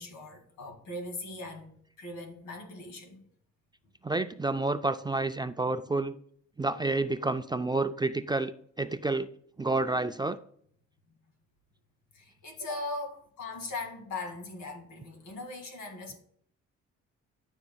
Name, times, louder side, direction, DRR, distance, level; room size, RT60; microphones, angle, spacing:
voice 1, 0.0-3.3 12.1-16.2, left 2 dB, 80° left, 2.3 m, -40 dB
voice 2, 4.0-6.1 6.6-9.3 9.6-10.4, right 2 dB, 15° right, 0.3 m, -29 dB
13.0 x 6.5 x 2.3 m
cardioid pair, 90°, 30 cm